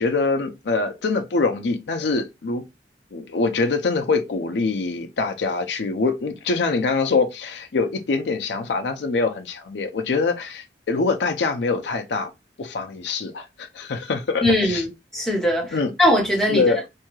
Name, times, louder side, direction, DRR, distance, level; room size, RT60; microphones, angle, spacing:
voice 1, 0.0-2.6 3.1-12.3 12.6-14.8 15.7-15.9 16.5-16.8, left 4 dB, 75° left, 0.5 m, -24 dB
voice 2, 14.4-16.9, left 1 dB, 5° left, 0.9 m, -21 dB
2.7 x 2.3 x 2.9 m
head